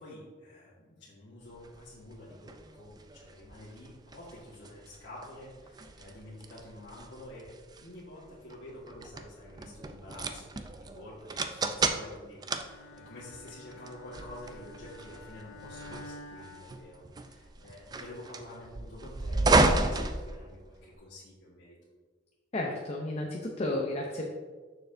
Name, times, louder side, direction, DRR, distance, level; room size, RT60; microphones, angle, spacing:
voice 1, 0.0-21.8, left 1 dB, 70° left, -9 dB, 1.5 m, -49 dB
sound 1, 1.6-21.0, right 2 dB, 20° right, 0.3 m, -33 dB
Bowed string instrument, 12.5-17.5, left 2 dB, 85° left, 0.5 m, -50 dB
voice 2, 22.5-24.3, left 1 dB, 35° left, 0 dB, 0.6 m, -32 dB
6.6 x 6.6 x 2.6 m, 1.4 s
head